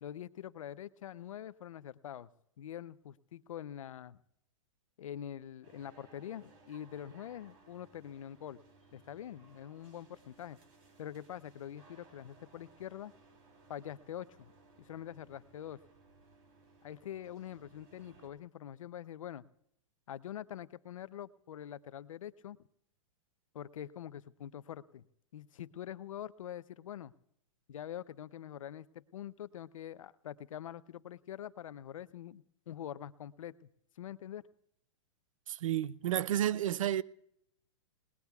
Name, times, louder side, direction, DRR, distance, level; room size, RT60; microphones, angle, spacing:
voice 1, 0.0-2.3 2.6-4.2 5.0-8.6 8.9-10.6 11.0-13.1 13.7-14.5 14.8-15.8 16.8-19.5 20.1-22.6 23.5-25.0 25.3-27.1 27.7-33.7 34.0-34.4, left 10 dB, 90° left, 0.6 m, -45 dB
sound 1, 5.6-18.3, right 3 dB, 40° right, 3.3 m, -62 dB
voice 2, 35.5-37.0, right 11 dB, 85° right, 0.5 m, -31 dB
28.5 x 19.0 x 2.3 m
hypercardioid pair, 155°, 17 cm